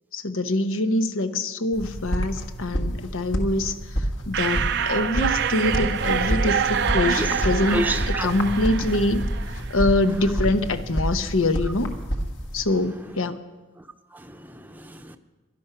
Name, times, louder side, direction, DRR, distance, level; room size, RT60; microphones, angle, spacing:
voice 1, 0.1-3.7 4.3-9.2 9.7-11.9 12.5-13.4, left 2 dB, 80° left, 1.0 m, -24 dB
sound 1, 1.7-12.6, equal, 60° left, 1.9 m, -28 dB
sound 2, 4.3-9.9, right 7 dB, 55° right, 0.5 m, -26 dB
voice 2, 7.2-8.3 14.1-15.2, right 1 dB, 10° right, 0.7 m, -30 dB
17.5 x 12.0 x 5.8 m
head